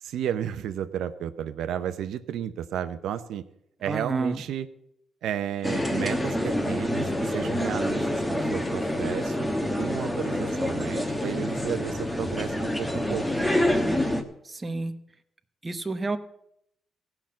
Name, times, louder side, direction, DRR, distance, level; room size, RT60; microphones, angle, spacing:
voice 1, 0.0-3.4 3.8-4.7 5.2-9.5 9.8-13.3, right 10 dB, 85° right, 10 dB, 0.7 m, -33 dB
voice 2, 3.9-4.4 14.4-14.9 15.6-16.2, right 3 dB, 20° right, 8 dB, 0.8 m, -30 dB
sound 1, 5.6-14.2, left 1 dB, 10° left, 1.2 m, -27 dB
15.5 x 5.9 x 7.4 m, 0.75 s
cardioid pair, 110°, 0 cm